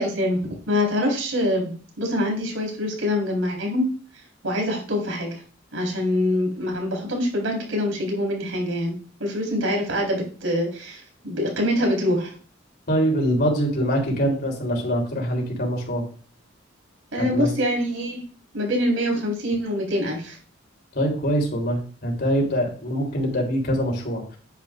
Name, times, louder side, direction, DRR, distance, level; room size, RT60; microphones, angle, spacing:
voice 1, 0.0-3.9 4.4-5.4 5.7-8.9 9.2-12.3 17.1-18.2 18.5-20.4, left 1 dB, 80° right, 0 dB, 3.9 m, -25 dB
voice 2, 12.9-16.0 17.2-17.5 20.9-24.2, equal, 50° left, 1 dB, 3.3 m, -24 dB
10.5 x 9.8 x 2.5 m, 0.40 s
head